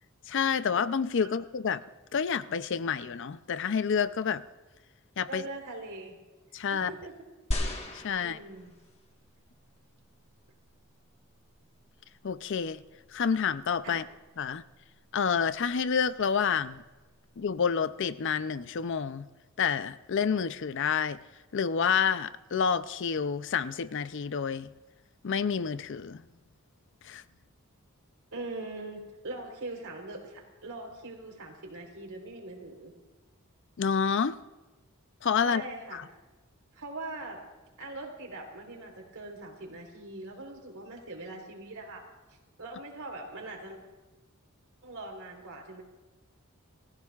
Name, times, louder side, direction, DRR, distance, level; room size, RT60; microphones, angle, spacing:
voice 1, 0.3-1.8 2.1-4.4 5.2-5.5 6.5-6.9 7.9-8.4 12.2-12.8 13.1-14.0 14.4-14.6 15.1-16.8 17.4-19.3 19.6-21.2 21.5-24.7 25.2-26.2 27.0-27.2 33.8-34.4 35.2-35.6 35.9-36.0, left 6 dB, 55° left, 0.5 m, -28 dB
voice 2, 5.3-6.2 6.7-7.1 8.2-8.7 13.8-14.0 28.3-32.9 35.4-36.0 36.7-37.4 37.8-42.0 42.6-43.8 44.8-45.8, right 2 dB, 75° right, 3.6 m, -41 dB
sound 1, 7.5-9.0 9.8-9.9, left 1 dB, 30° left, 1.4 m, -34 dB
29.5 x 15.5 x 2.4 m
head